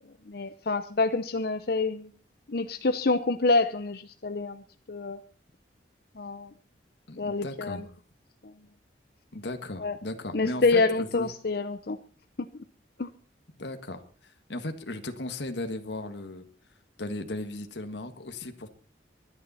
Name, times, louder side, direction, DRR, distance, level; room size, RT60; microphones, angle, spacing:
voice 1, 0.3-2.1 2.5-4.6 4.9-5.2 6.2-6.5 7.2-7.8 9.8-10.0 10.3-12.0 12.4-12.6 13.0-13.1, left 3 dB, 60° left, 9 dB, 0.8 m, -27 dB
voice 2, 7.1-7.8 9.3-11.3 13.6-16.4 17.0-18.7, left 2 dB, 75° left, 7 dB, 1.7 m, -36 dB
24.0 x 10.0 x 4.2 m, 0.40 s
head